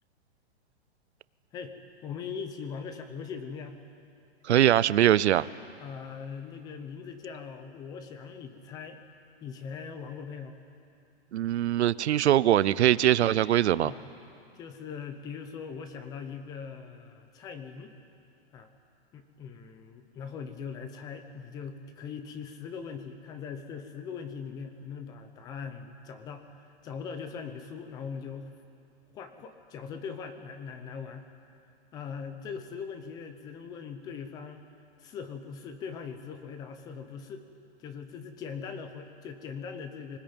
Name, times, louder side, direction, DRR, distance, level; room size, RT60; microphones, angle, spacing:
voice 1, 2.0-3.8 5.8-9.0 9.4-10.5 13.8-14.0 14.5-17.9 18.5-18.7 19.1-26.5 26.8-28.5 29.1-31.3 31.9-34.6 35.0-37.4 37.8-40.2, left 6 dB, 10° left, 8 dB, 0.7 m, -40 dB
voice 2, 4.4-5.5 11.3-13.9, right 12 dB, 85° right, 19 dB, 0.7 m, -22 dB
23.5 x 20.0 x 8.9 m, 2.5 s
hypercardioid pair, 170°, 33 cm